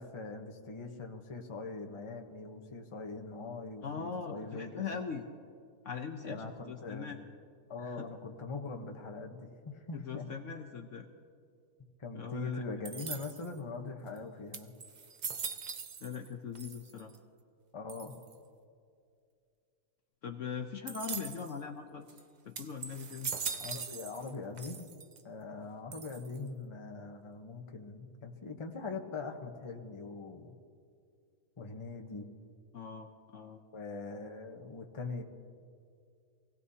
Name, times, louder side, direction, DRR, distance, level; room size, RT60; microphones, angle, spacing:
voice 1, 0.0-4.8 6.2-7.1 7.7-10.2 12.0-14.7 17.7-18.2 23.6-24.9 25.2-30.6 31.6-32.3 33.7-35.2, left 3 dB, 25° left, 3 dB, 0.8 m, -42 dB
voice 2, 3.8-5.3 5.8-7.2 7.8-8.0 9.9-11.1 12.1-12.6 16.0-17.1 20.2-22.2 22.4-23.3 32.7-33.6, left 6 dB, 60° left, 4 dB, 1.0 m, -41 dB
sound 1, 12.8-13.6 14.2-14.3 14.5-16.3 16.5-17.2 17.9-18.3 20.9-21.5 22.1-22.2 22.5-24.3 24.6-25.2 25.9-26.5, right 6 dB, 85° right, 0.4 m, -41 dB
24.5 x 17.0 x 2.8 m, 2.3 s
omnidirectional pair, 1.7 m